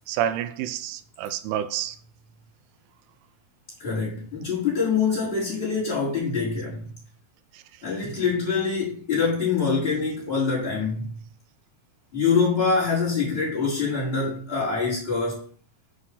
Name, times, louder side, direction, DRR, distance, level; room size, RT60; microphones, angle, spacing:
voice 1, 0.1-2.0 7.5-7.8, right 10 dB, 90° right, 3.2 m, -29 dB
voice 2, 3.8-6.8 7.8-11.1 12.1-15.5, left 5 dB, 10° left, 5.0 m, -25 dB
8.2 x 6.3 x 5.6 m
omnidirectional pair, 5.6 m